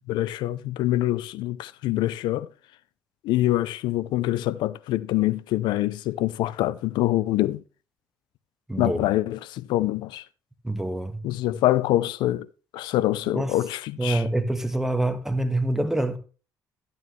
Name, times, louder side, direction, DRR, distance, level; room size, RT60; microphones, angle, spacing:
voice 1, 0.0-2.5 3.2-7.6 8.8-10.2 11.2-12.5 12.7-14.2, left 15 dB, 80° left, 0.6 m, -25 dB
voice 2, 8.7-9.0 10.6-11.2 13.3-13.5 14.0-16.2, right 1 dB, 5° right, 1.6 m, -26 dB
12.5 x 9.1 x 3.2 m
supercardioid pair, 75°, 8 cm